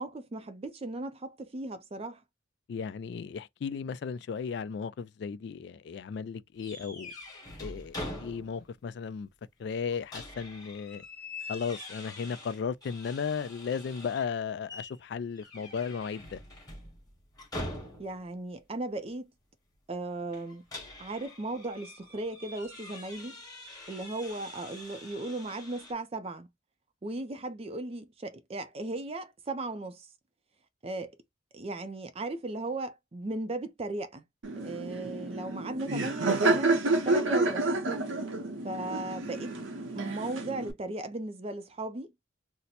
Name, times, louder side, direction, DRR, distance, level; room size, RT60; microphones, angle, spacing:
voice 1, 0.0-2.2 18.0-19.3 19.9-20.6 21.0-23.4 23.9-26.5 27.0-30.1 30.8-31.2 31.5-34.2 34.6-36.7 37.0-37.7 38.6-39.6 39.9-42.1, right 2 dB, 30° right, 0.4 m, -36 dB
voice 2, 2.7-7.1 7.6-9.3 9.6-11.0 11.5-16.4, left 6 dB, 60° left, 0.3 m, -35 dB
sound 1, 6.6-8.8 9.1-9.2 9.7-14.3 14.7-15.0 15.4-18.3 20.3-25.9, left 1 dB, 20° left, 1.2 m, -44 dB
Laughter, 34.4-40.7, right 2 dB, 80° right, 0.8 m, -29 dB
2.7 x 2.1 x 4.0 m
head